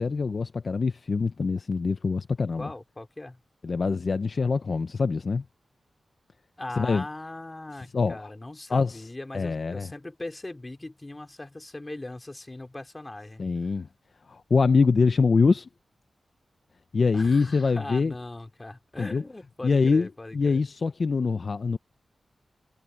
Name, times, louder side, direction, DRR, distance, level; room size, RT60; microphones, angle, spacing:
voice 1, 0.0-2.7 3.6-5.4 6.8-7.0 7.9-8.3 8.7-9.0 9.3-9.9 13.4-13.9 14.3-15.7 16.9-18.1 19.0-19.2 19.6-20.1 20.3-21.8, left 4 dB, 50° left, 0.5 m, -24 dB
voice 2, 2.5-3.4 6.6-13.7 17.1-20.7, left 2 dB, 20° left, 2.7 m, -40 dB
wide cardioid pair, 135°, 0 cm